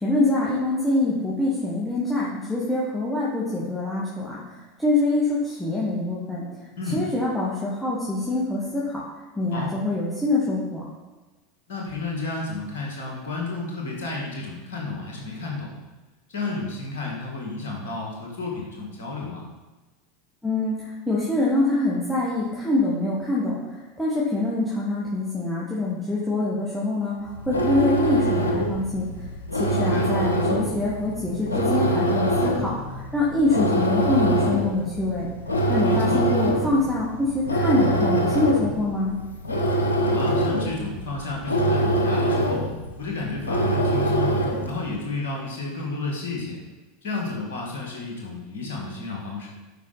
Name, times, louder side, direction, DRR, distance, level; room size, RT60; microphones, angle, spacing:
voice 1, 0.0-6.4 6.9-9.0 9.4-10.8 20.4-23.6 24.0-29.1 29.5-35.3 35.7-39.2, left 2 dB, 5° left, -8 dB, 2.0 m, -25 dB
voice 2, 11.7-15.8 16.3-19.4 29.7-30.1 35.8-36.2 40.0-42.7 43.0-44.4 44.7-46.6 47.0-49.5, left 3 dB, 65° left, -1 dB, 2.0 m, -32 dB
sound 1, 27.3-44.8, right 1 dB, 80° left, 1.1 m, -24 dB
11.5 x 5.1 x 4.2 m, 1.2 s
figure-of-eight pair, 80°, 0 cm